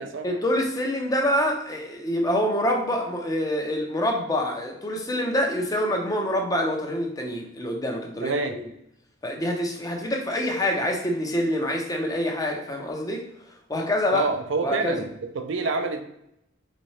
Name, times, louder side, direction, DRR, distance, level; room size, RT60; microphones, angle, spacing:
voice 1, 0.2-8.6 9.2-13.2 13.7-14.3 14.6-15.0, left 1 dB, 20° left, 1 dB, 0.7 m, -26 dB
voice 2, 8.2-8.6 14.1-16.0, right 3 dB, 60° right, 6 dB, 0.5 m, -27 dB
4.2 x 3.7 x 3.1 m, 0.79 s
head